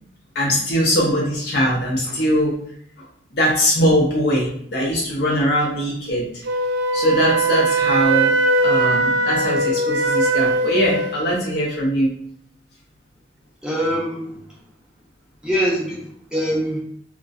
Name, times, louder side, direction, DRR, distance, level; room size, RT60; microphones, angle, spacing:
voice 1, 0.3-2.5 3.0-3.1 3.3-6.3 6.9-8.3 8.6-12.1, equal, 65° left, -5 dB, 0.6 m, -21 dB
Wind instrument woodwind instrument, 6.4-11.2, right 2 dB, 70° right, 0.3 m, -20 dB
voice 2, 13.6-14.4 15.4-16.8, equal, 5° right, -5 dB, 0.5 m, -23 dB
2.5 x 2.1 x 2.3 m, 0.65 s
head